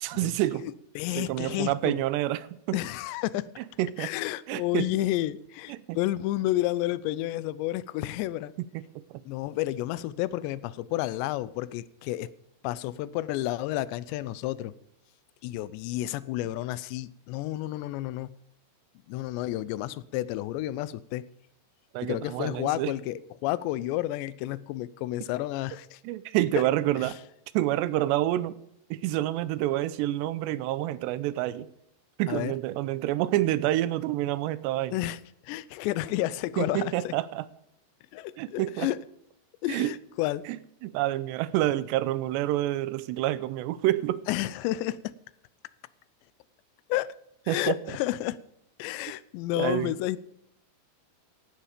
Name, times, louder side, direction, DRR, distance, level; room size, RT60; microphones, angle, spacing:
voice 1, 0.0-0.7 1.2-2.8 3.8-4.1 4.5-4.9 5.7-6.0 8.7-8.8 9.1-9.2 21.9-22.9 26.0-27.2 27.5-28.6 28.9-31.7 32.2-34.9 36.6-37.5 38.4-38.9 39.7-39.9 40.5-40.6 40.8-44.2 47.5-47.8 49.6-49.9, right 15 dB, 85° right, 17 dB, 2.9 m, -28 dB
voice 2, 0.6-2.0 2.7-3.5 4.0-8.5 9.3-12.3 12.6-14.7 15.4-18.3 19.1-21.3 22.0-26.0 27.0-27.1 32.3-32.5 34.9-37.1 38.1-39.0 39.6-40.4 44.3-45.1 46.9-47.1 47.5-48.4 48.8-50.2, left 15 dB, 90° left, 18 dB, 2.9 m, -31 dB
16.5 x 11.5 x 5.1 m, 0.79 s
omnidirectional pair, 4.9 m